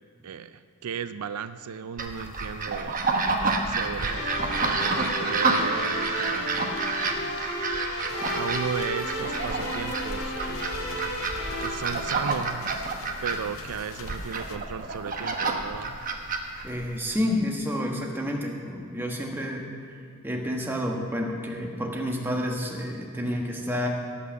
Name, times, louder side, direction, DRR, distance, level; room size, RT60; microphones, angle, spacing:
voice 1, 0.2-3.0 3.7-4.3 4.6-6.7 7.0-7.3 8.3-10.8 11.6-12.9 13.2-16.0, right 7 dB, 85° right, 12 dB, 0.4 m, -35 dB
sound 1, 2.0-17.2, right 3 dB, 40° right, 1.0 m, -29 dB
sound 2, 4.0-11.8, equal, 85° left, 2.6 m, -33 dB
sound 3, 8.1-14.6, left 4 dB, 65° left, 0.7 m, -44 dB
voice 2, 16.6-19.7 20.2-23.9, left 1 dB, 10° right, 0 dB, 1.2 m, -29 dB
17.0 x 6.1 x 7.2 m, 2.4 s
head